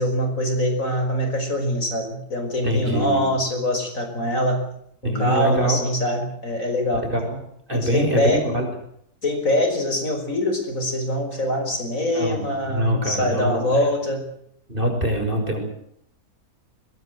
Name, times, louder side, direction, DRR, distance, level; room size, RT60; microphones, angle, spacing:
voice 1, 0.0-4.6 5.0-7.0 7.7-8.4 9.2-14.2, left 1 dB, 55° left, 5 dB, 5.9 m, -23 dB
voice 2, 2.6-3.3 5.0-5.8 7.0-7.4 7.7-8.7 11.3-11.4 12.1-13.9 14.7-15.7, right 1 dB, 35° right, 4 dB, 6.5 m, -24 dB
22.5 x 22.0 x 7.9 m, 0.71 s
omnidirectional pair, 1.7 m